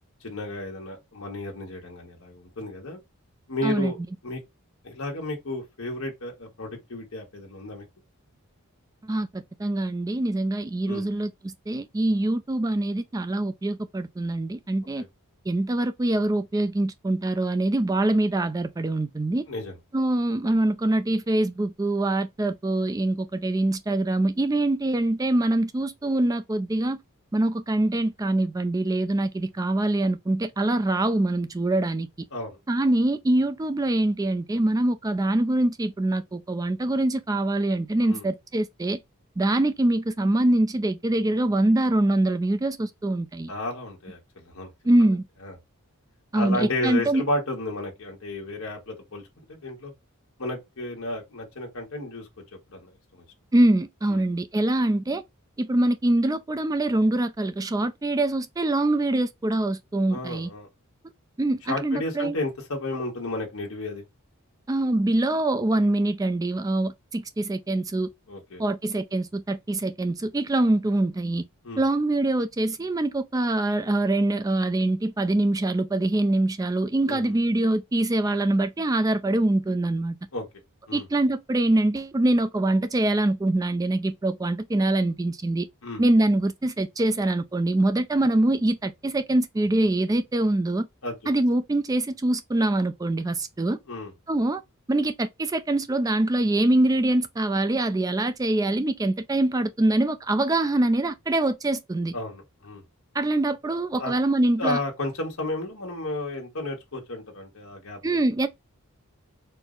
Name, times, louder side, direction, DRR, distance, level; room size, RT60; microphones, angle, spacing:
voice 1, 0.2-3.0 3.5-4.0 4.2-4.4 4.8-7.9 10.9-11.1 15.0-15.1 19.5-19.7 32.3-32.6 38.0-38.3 43.5-44.7 45.4-45.5 46.3-49.9 50.4-52.4 52.7-53.2 54.1-54.2 60.1-60.7 61.7-64.0 68.3-68.6 71.6-71.8 77.1-77.3 80.3-80.4 80.9-81.1 85.8-86.0 91.0-91.2 93.9-94.1 102.1-102.8 104.0-104.1 104.6-108.2, left 2 dB, 65° left, 1.2 m, -33 dB
voice 2, 9.0-15.0 15.5-19.4 19.9-27.0 27.3-32.1 32.7-39.0 39.4-43.5 44.8-45.2 46.3-47.2 53.5-55.2 55.6-60.5 61.4-62.4 64.7-68.1 68.6-71.4 71.8-80.2 80.9-85.7 86.0-90.9 91.3-93.8 94.3-94.6 94.9-102.1 103.1-104.8 108.0-108.5, right 1 dB, 15° right, 0.3 m, -24 dB
4.4 x 2.0 x 3.7 m
head